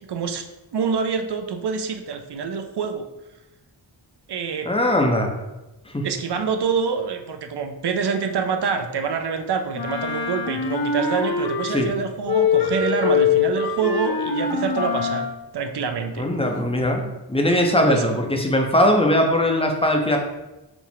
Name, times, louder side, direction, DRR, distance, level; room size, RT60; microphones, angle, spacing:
voice 1, 0.1-0.4 0.7-3.0 4.3-4.7 6.0-15.3 15.5-16.3 17.9-18.0, right 6 dB, 60° right, 6 dB, 0.5 m, -26 dB
voice 2, 4.6-5.3 5.9-6.1 11.7-11.9 16.2-20.2, left 1 dB, 15° left, 2 dB, 0.5 m, -20 dB
Wind instrument woodwind instrument, 9.7-12.0 12.2-15.4, left 6 dB, 55° left, 0.6 m, -23 dB
4.9 x 2.4 x 3.4 m, 1.0 s
wide cardioid pair, 105°, 45 cm